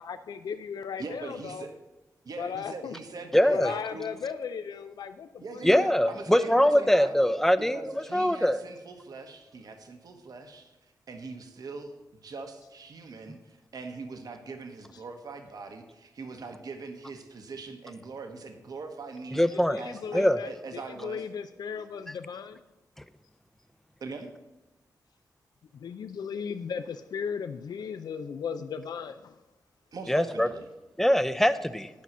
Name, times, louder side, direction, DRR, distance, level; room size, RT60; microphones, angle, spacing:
voice 1, 0.0-1.7 2.4-5.8 19.5-22.6 25.7-29.4, left 6 dB, 75° left, 9 dB, 0.4 m, -36 dB
voice 2, 1.0-1.7 2.2-4.1 5.4-7.1 7.6-10.8 11.1-11.9 12.2-21.2 24.0-24.3 29.9-30.7, right 4 dB, 65° right, 5 dB, 1.1 m, -42 dB
voice 3, 3.3-3.7 5.6-8.6 19.3-19.8 20.1-20.4 30.1-30.5 31.0-31.9, equal, 5° left, 11 dB, 0.5 m, -23 dB
10.5 x 5.5 x 6.1 m, 1.1 s
cardioid pair, 85°, 7 cm